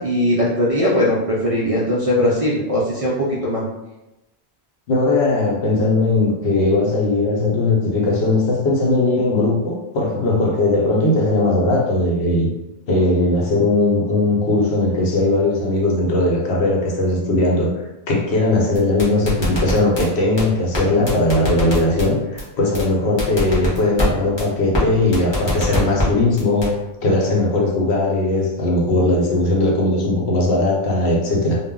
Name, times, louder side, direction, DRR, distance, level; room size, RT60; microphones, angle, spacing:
voice 1, 0.0-3.6, left 1 dB, 55° right, -6 dB, 0.4 m, -19 dB
voice 2, 4.9-12.5 12.9-17.7 18.1-26.7 27.0-31.6, left 2 dB, 80° left, -1 dB, 1.0 m, -18 dB
sound 1, 18.7-20.0 20.4-20.5 20.7-20.8 21.1-22.1 22.4-22.5 22.7-22.8 23.2-24.1 24.4-24.5 24.7-24.8 25.1-26.1 26.4-26.7, left 1 dB, 30° left, 0.7 m, -22 dB
2.1 x 2.0 x 3.6 m, 0.97 s
omnidirectional pair, 1.1 m